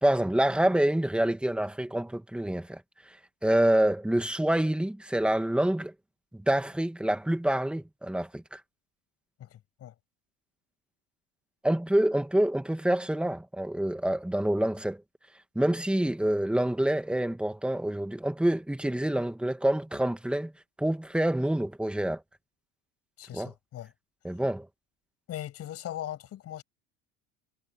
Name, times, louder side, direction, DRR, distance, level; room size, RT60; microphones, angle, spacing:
voice 1, 0.0-2.8 3.1-3.2 3.4-5.9 6.3-8.6 11.6-15.0 15.6-20.5 20.8-22.2 23.3-23.5 24.2-24.7, right 1 dB, 5° right, 1.9 m, -27 dB
voice 2, 9.4-9.9 23.2-23.9 25.3-26.6, left 12 dB, 45° left, 7.9 m, -39 dB
cardioid pair, 135°, 34 cm